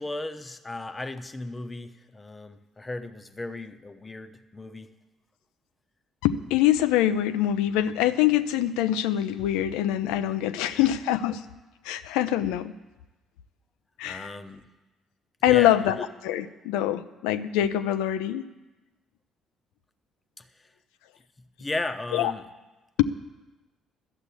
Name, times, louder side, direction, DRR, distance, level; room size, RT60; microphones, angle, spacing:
voice 1, 0.0-4.9 10.7-10.9 14.0-14.7 15.5-16.1 20.4-20.7 21.4-22.5, left 2 dB, 20° left, 9 dB, 1.0 m, -36 dB
voice 2, 6.2-11.4 11.8-12.7 14.0-14.4 15.4-16.0 16.2-18.4 22.1-22.3 23.0-23.1, left 12 dB, 65° left, 13 dB, 0.5 m, -24 dB
12.5 x 7.9 x 8.3 m, 1.1 s
figure-of-eight pair, 45°, 0 cm